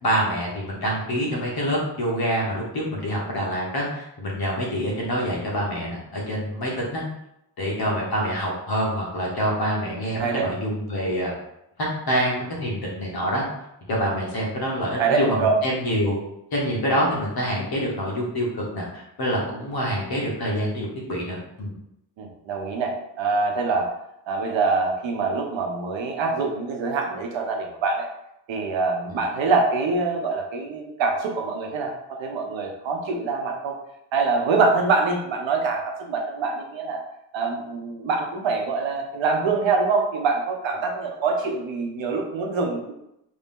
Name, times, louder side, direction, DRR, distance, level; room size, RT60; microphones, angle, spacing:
voice 1, 0.0-7.0 7.6-11.3 12.1-13.4 13.9-16.2 16.5-21.7 29.1-29.2, equal, 55° left, -3 dB, 1.3 m, -26 dB
voice 2, 15.0-15.5 22.2-23.9 24.3-28.1 28.5-33.7 34.1-37.0 37.3-42.9, right 4 dB, 90° right, 2 dB, 0.8 m, -24 dB
3.4 x 2.7 x 3.6 m, 0.82 s
wide cardioid pair, 140°, 45 cm